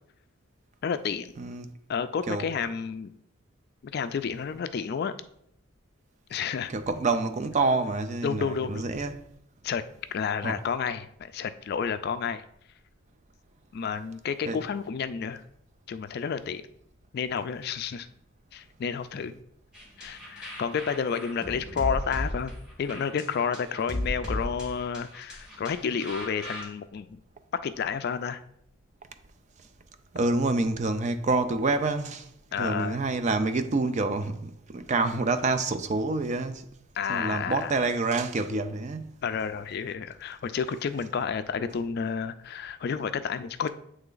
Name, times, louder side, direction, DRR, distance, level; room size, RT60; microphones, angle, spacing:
voice 1, 0.8-1.3 1.9-3.1 3.9-5.1 6.3-6.7 8.2-8.9 9.6-9.8 10.1-12.4 13.7-15.4 15.9-16.6 17.1-18.1 18.5-19.3 20.0-22.5 22.8-27.2 27.6-28.4 32.5-33.0 37.0-37.8 39.2-43.7, left 6 dB, 50° left, 0.3 m, -30 dB
voice 2, 1.4-1.7 2.3-2.5 6.7-9.2 10.4-10.6 14.4-14.6 30.1-32.3 32.6-36.7 37.1-39.1, right 3 dB, 35° right, 0.4 m, -27 dB
sound 1, 19.7-26.6, left 1 dB, 5° right, 1.3 m, -36 dB
7.9 x 3.3 x 3.8 m
head